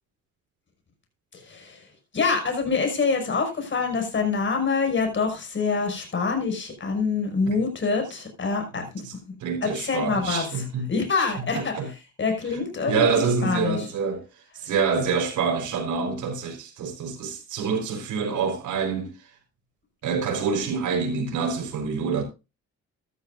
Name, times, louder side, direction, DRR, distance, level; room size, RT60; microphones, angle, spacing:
voice 1, 1.3-1.8 2.1-9.0 9.6-13.9, left 4 dB, 40° left, 5.9 m, -26 dB
voice 2, 9.4-10.9 11.5-11.9 12.9-14.2 14.6-19.1 20.0-22.2, right 5 dB, 80° right, 4.4 m, -26 dB
14.5 x 12.0 x 2.6 m
cardioid pair, 90°, 30 cm